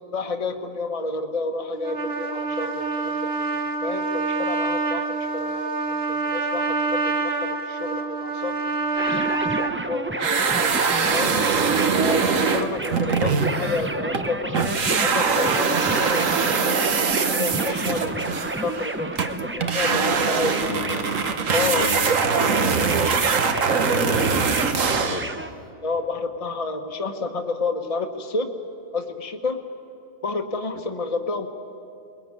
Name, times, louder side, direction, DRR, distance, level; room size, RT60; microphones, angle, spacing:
voice 1, 0.1-3.3 3.8-8.5 8.9-10.8 11.1-11.4 11.9-14.7 15.0-16.3 17.2-19.1 19.4-20.5 21.5-21.9 25.8-28.5 28.9-29.6 30.2-31.5, left 3 dB, 30° left, 4 dB, 1.3 m, -30 dB
Trumpet, 1.7-9.7, right 3 dB, 50° right, 1.6 m, -26 dB
sound 1, 9.0-25.5, right 2 dB, 15° right, 0.5 m, -31 dB
sound 2, 10.2-14.3 14.5-25.3, right 5 dB, 75° right, 1.6 m, -23 dB
voice 2, 19.9-21.0 21.6-22.1 22.3-23.1 23.9-25.3 30.8-30.9, left 3 dB, 50° left, 4 dB, 1.5 m, -34 dB
23.0 x 21.0 x 9.4 m, 2.8 s
omnidirectional pair, 1.4 m